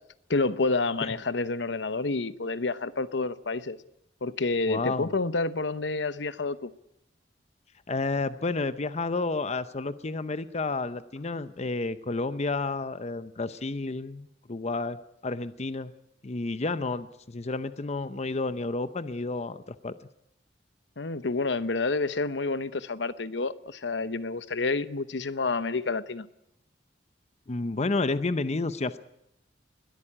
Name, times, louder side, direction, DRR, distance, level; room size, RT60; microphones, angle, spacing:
voice 1, 0.3-3.8 4.2-6.7 21.0-26.3, left 3 dB, 70° left, 0.9 m, -29 dB
voice 2, 4.7-5.1 7.9-15.0 15.2-15.9 16.2-19.9 27.5-29.0, left 3 dB, 40° left, 0.7 m, -31 dB
21.0 x 13.5 x 10.0 m
head